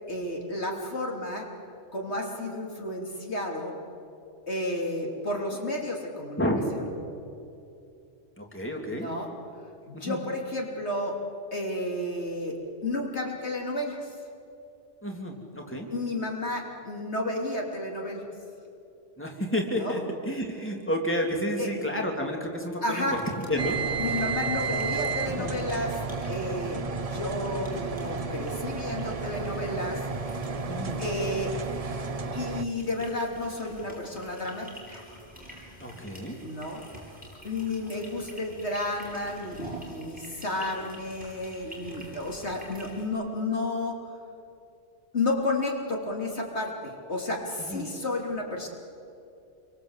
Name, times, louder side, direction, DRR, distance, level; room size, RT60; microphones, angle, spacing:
voice 1, 0.1-1.5 1.9-3.8 4.5-6.4 6.7-6.8 8.9-9.3 9.9-11.2 11.5-14.1 15.9-18.2 19.7-20.0 21.6-21.7 22.8-23.2 24.0-26.0 26.3-30.0 31.0-31.5 32.3-35.0 36.4-36.8 37.4-44.0 45.1-48.7, left 2 dB, 65° left, 0 dB, 3.5 m, -32 dB
voice 2, 8.4-9.1 9.9-10.2 15.0-15.9 19.2-23.1 23.5-23.8 24.1-24.2 25.4-25.5 30.7-31.0 35.8-36.4 47.7-47.9, equal, 10° left, 1 dB, 3.0 m, -30 dB
sound 1, 23.2-43.1, right 1 dB, 5° right, 7.5 m, -48 dB
sound 2, 23.6-32.6, right 4 dB, 35° right, 0.9 m, -32 dB
28.0 x 24.0 x 8.2 m, 2.6 s
omnidirectional pair, 1.2 m